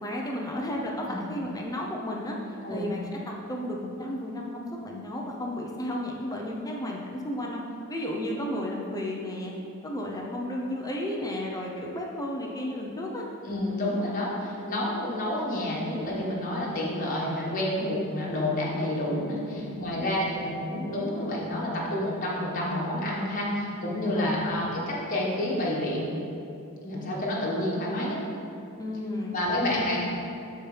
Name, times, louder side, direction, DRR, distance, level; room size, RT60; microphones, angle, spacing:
voice 1, 0.0-2.4 2.7-7.6 7.9-9.5 9.8-13.2 19.5-20.2 24.0-24.4 28.8-30.0, left 1 dB, 15° left, -1 dB, 0.7 m, -33 dB
voice 2, 13.4-26.1 26.8-28.2 29.3-30.0, left 1 dB, 40° left, -5 dB, 1.4 m, -29 dB
12.0 x 4.4 x 3.3 m, 2.6 s
head